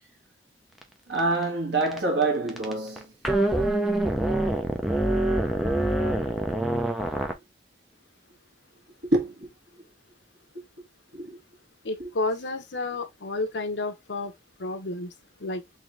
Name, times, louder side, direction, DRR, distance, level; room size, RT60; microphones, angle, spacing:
sound 1, 0.8-0.9 1.2-1.4 1.8-2.2 2.5-7.3, right 1 dB, ahead, 0.6 m, -25 dB
voice 1, 1.1-3.1 7.3-7.4 9.0-9.5 10.5-10.8 11.1-11.4 12.0-12.1, right 2 dB, 75° right, 1.6 m, -27 dB
voice 2, 11.8-14.3 14.6-15.1 15.4-15.6, left 2 dB, 80° left, 0.8 m, -30 dB
3.8 x 3.2 x 3.1 m
head